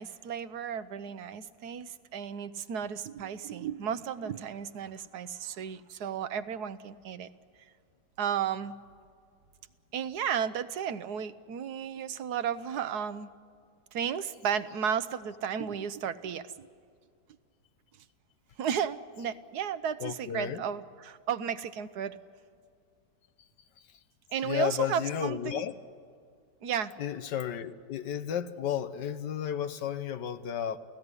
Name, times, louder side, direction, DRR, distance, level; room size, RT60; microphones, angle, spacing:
voice 1, 0.0-7.3 8.2-8.7 9.9-13.3 13.9-16.7 18.6-22.2 24.3-25.6 26.6-26.9, right 8 dB, 70° right, 1.4 m, -33 dB
voice 2, 20.0-20.6 23.9-24.0 24.4-25.7 27.0-30.8, left 9 dB, 85° left, 1.6 m, -33 dB
29.0 x 17.0 x 9.7 m
omnidirectional pair, 1.8 m